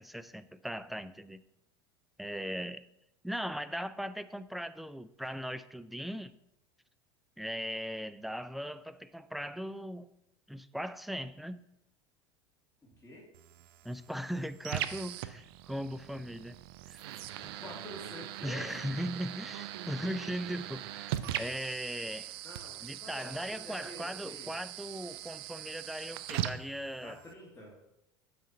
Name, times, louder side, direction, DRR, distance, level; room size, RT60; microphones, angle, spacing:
voice 1, 0.0-1.4 2.2-2.8 3.2-6.3 7.4-10.1 10.5-11.6 13.8-16.6 16.9-17.1 18.4-22.3 22.8-27.2, equal, ahead, 12 dB, 0.4 m, -39 dB
sound 1, 13.3-27.3, right 13 dB, 65° right, 0.5 m, -41 dB
voice 2, 17.4-18.8 22.4-24.5 27.0-27.8, left 1 dB, 15° left, -5 dB, 2.0 m, -48 dB
6.3 x 4.3 x 6.4 m, 0.86 s
hypercardioid pair, 75°, 14 cm